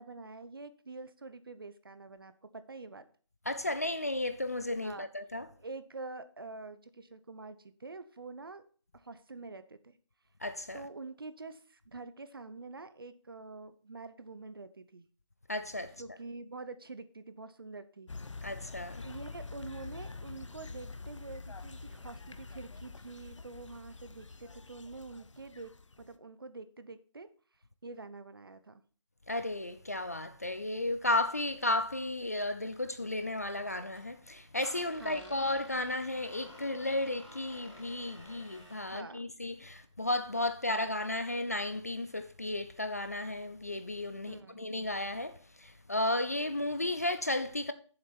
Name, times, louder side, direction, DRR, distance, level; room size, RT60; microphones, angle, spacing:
voice 1, 0.0-3.1 4.8-5.1 5.6-8.7 8.9-10.0 10.7-15.1 16.0-18.1 19.0-25.7 26.0-27.3 27.8-28.8 35.0-35.5 38.9-39.2 44.3-44.6, right 3 dB, 45° right, 0.7 m, -46 dB
voice 2, 3.5-5.5 10.4-10.8 15.5-16.0 18.4-19.1 29.3-47.7, left 2 dB, 30° left, 0.4 m, -34 dB
sound 1, 18.1-26.2, left 3 dB, 70° left, 0.9 m, -46 dB
Squeak, 33.6-38.9, left 1 dB, 5° left, 1.7 m, -54 dB
9.5 x 7.2 x 4.3 m
figure-of-eight pair, 175°, 16 cm